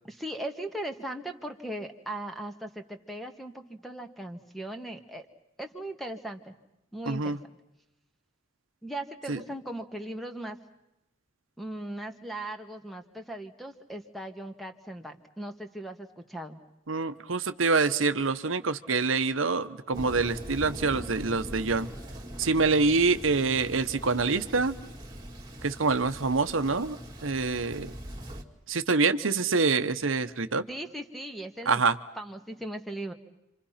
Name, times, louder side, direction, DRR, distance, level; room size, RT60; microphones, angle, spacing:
voice 1, 0.0-5.3 5.6-6.5 6.9-7.4 8.8-10.6 11.6-16.6 30.7-31.8 32.2-33.1, right 1 dB, ahead, 6 dB, 1.7 m, -38 dB
voice 2, 7.1-7.4 9.3-9.4 16.9-21.9 22.4-24.8 25.6-27.0 27.2-27.9 28.7-30.6 31.7-32.0, right 4 dB, 85° right, 10 dB, 1.1 m, -26 dB
Thunder, 19.9-28.4, equal, 20° right, 2.3 m, -41 dB
30.0 x 26.5 x 5.8 m, 0.89 s
head